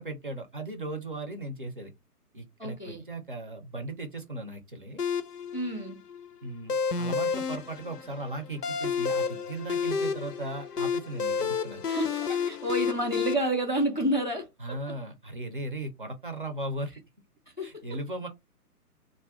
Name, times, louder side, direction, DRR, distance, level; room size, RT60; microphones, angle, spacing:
voice 1, 0.0-1.9 2.3-5.0 6.4-11.8 14.6-16.9 17.6-18.3, right 2 dB, 35° right, 0.5 m, -37 dB
voice 2, 2.6-3.0 5.5-6.0 11.9-15.0 17.6-17.8, right 1 dB, 35° left, 0.4 m, -30 dB
sound 1, 5.0-13.3, left 6 dB, 90° left, 0.6 m, -30 dB
2.4 x 2.1 x 3.4 m
figure-of-eight pair, 135°, 47 cm